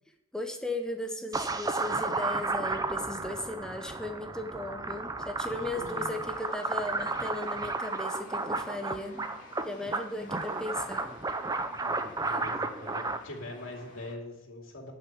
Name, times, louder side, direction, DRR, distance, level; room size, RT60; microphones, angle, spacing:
voice 1, 0.3-9.3 9.6-11.1 12.2-12.4, left 1 dB, 5° left, 4 dB, 0.9 m, -37 dB
sound 1, 1.3-13.2, right 3 dB, 20° right, 0.6 m, -33 dB
voice 2, 5.5-6.2 11.9-14.9, left 1 dB, 70° left, 0 dB, 2.6 m, -43 dB
sound 2, 5.9-14.1, left 2 dB, 40° left, 2.1 m, -52 dB
10.5 x 5.8 x 8.0 m, 0.88 s
head